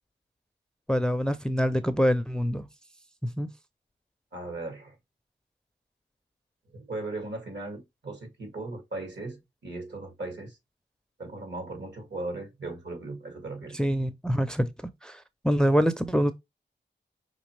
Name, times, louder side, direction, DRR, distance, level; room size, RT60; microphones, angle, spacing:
voice 1, 0.9-2.7 3.2-3.5 13.7-14.7 15.0-16.3, equal, 5° left, 0.5 m, -25 dB
voice 2, 4.3-5.0 6.7-10.6 11.2-13.8, right 2 dB, 70° right, 2.0 m, -37 dB
5.1 x 3.3 x 3.2 m
cardioid pair, 60°, 19 cm